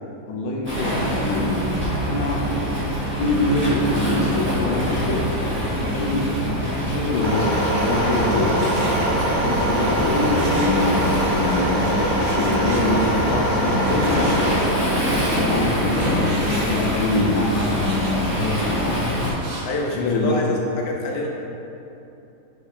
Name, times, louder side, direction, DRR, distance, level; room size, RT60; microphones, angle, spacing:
voice 1, 0.3-1.7 2.1-5.3 5.8-8.5 9.4-14.8 15.3-19.1 19.9-20.4, left 2 dB, 80° left, -1 dB, 1.2 m, -24 dB
Waves surf, 0.6-19.3, equal, 10° right, 0.7 m, -25 dB
sound 1, 7.2-14.5, equal, 80° right, 1.6 m, -23 dB
Frying (food), 8.1-19.9, right 1 dB, 60° right, 0.7 m, -38 dB
voice 2, 19.6-20.6 20.8-21.3, left 2 dB, 65° left, -1 dB, 0.6 m, -26 dB
6.3 x 2.9 x 2.5 m, 2.9 s
omnidirectional pair, 1.6 m